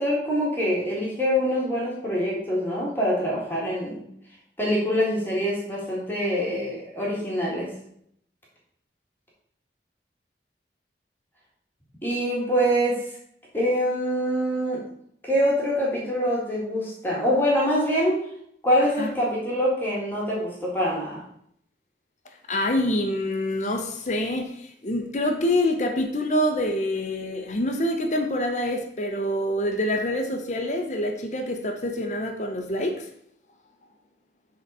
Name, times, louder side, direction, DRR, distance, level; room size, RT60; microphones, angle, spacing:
voice 1, 0.0-4.0 4.6-7.7 12.0-13.0 13.5-14.8 15.2-18.2 18.6-21.2, equal, 10° left, -5 dB, 2.0 m, -24 dB
voice 2, 22.5-33.1, left 1 dB, 40° left, 5 dB, 0.8 m, -26 dB
8.0 x 3.9 x 5.4 m, 0.70 s
head